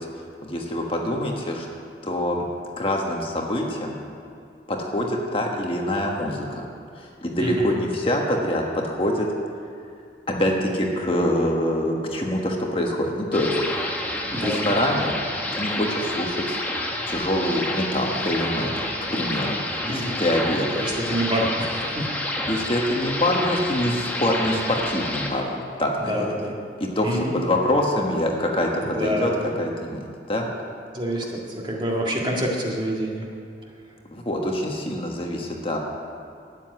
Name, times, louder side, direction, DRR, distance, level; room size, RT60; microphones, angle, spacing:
voice 1, 0.4-1.7 2.0-2.5 2.8-4.0 4.7-6.7 7.0-9.3 10.3-13.6 14.3-15.1 15.5-16.6 17.1-20.9 22.5-26.3 26.8-29.3 29.6-30.5 34.1-35.8, left 1 dB, 30° left, 0 dB, 1.4 m, -25 dB
voice 2, 7.4-7.8 14.3-14.7 19.8-20.2 20.8-22.1 22.5-22.7 26.1-26.5 27.0-27.3 28.8-29.5 30.9-33.3, equal, 25° right, -2 dB, 1.8 m, -27 dB
sound 1, 13.3-25.3, left 1 dB, 10° left, 1.3 m, -29 dB
12.5 x 7.8 x 9.4 m, 2.4 s
head